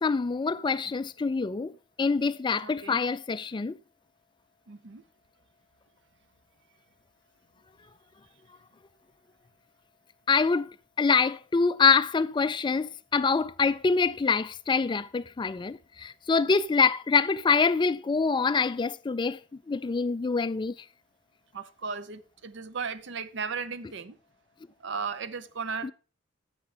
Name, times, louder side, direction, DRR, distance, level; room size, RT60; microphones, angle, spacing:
voice 1, 0.0-1.7 2.0-3.8 10.3-10.7 11.0-19.4 19.7-20.7 25.8-25.9, left 5 dB, 25° left, 0.3 m, -25 dB
voice 2, 2.6-3.0 4.7-5.0 21.5-24.2 24.8-25.9, right 5 dB, 65° right, 0.6 m, -36 dB
10.5 x 7.4 x 3.3 m
head